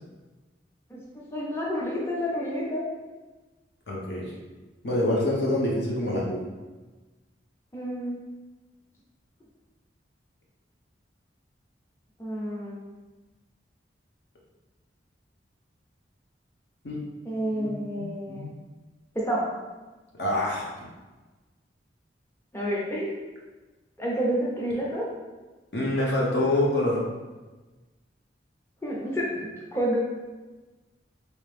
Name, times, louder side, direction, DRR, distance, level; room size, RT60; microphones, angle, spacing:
voice 1, 1.3-2.8 7.7-8.2 12.2-12.8 17.2-18.5 19.1-19.4 22.5-23.1 24.0-25.0 28.8-30.0, equal, 15° left, -5 dB, 0.5 m, -29 dB
voice 2, 3.9-4.3 4.8-6.4 16.8-17.0 17.5-17.7 18.0-18.5 20.2-20.9 25.7-27.0, left 1 dB, 65° left, -4 dB, 0.9 m, -26 dB
3.3 x 2.9 x 3.3 m, 1.2 s
head